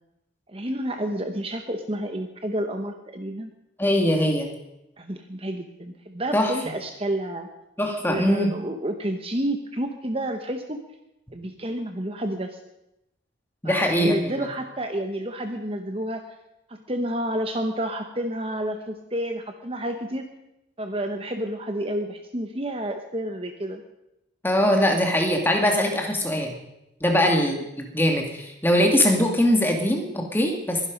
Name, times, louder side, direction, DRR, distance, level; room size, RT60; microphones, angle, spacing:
voice 1, 0.5-3.5 5.0-7.5 8.1-10.8 11.3-12.6 13.6-16.3 16.7-20.2 20.8-23.8 27.1-27.3, right 1 dB, 30° right, 5 dB, 1.1 m, -30 dB
voice 2, 3.8-4.5 6.3-6.5 7.8-8.5 13.6-14.4 24.4-26.6 27.0-30.9, equal, 10° left, 2 dB, 2.2 m, -22 dB
22.5 x 11.0 x 5.3 m, 0.87 s
head